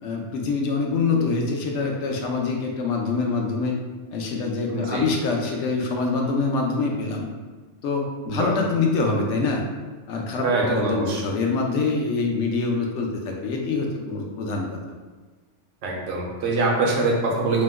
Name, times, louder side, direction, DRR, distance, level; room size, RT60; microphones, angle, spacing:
voice 1, 0.0-3.7 4.1-7.3 7.8-9.6 10.1-14.7, left 4 dB, 75° left, 1 dB, 0.9 m, -25 dB
voice 2, 4.7-5.1 8.3-8.5 10.4-11.2 15.8-17.6, right 3 dB, 90° right, -1 dB, 1.0 m, -24 dB
2.9 x 2.1 x 3.4 m, 1.3 s
omnidirectional pair, 1.2 m